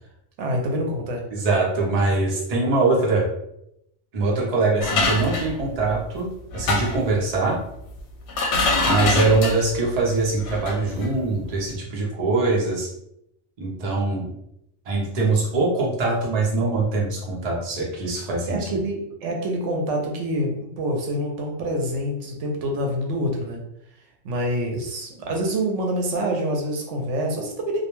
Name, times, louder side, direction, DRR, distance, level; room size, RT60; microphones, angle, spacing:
voice 1, 0.4-1.2 18.5-23.6 24.2-27.8, equal, 85° right, 1 dB, 0.9 m, -26 dB
voice 2, 1.3-3.2 4.1-7.6 8.8-12.9 13.6-14.3 14.9-18.8, right 3 dB, 40° right, -3 dB, 0.6 m, -23 dB
sound 1, 4.8-6.0 6.5-7.1 8.0-8.1 8.3-9.7 10.4-10.8 11.0-11.1, left 2 dB, 70° left, 0.8 m, -24 dB
2.3 x 2.1 x 2.9 m, 0.79 s
omnidirectional pair, 1.2 m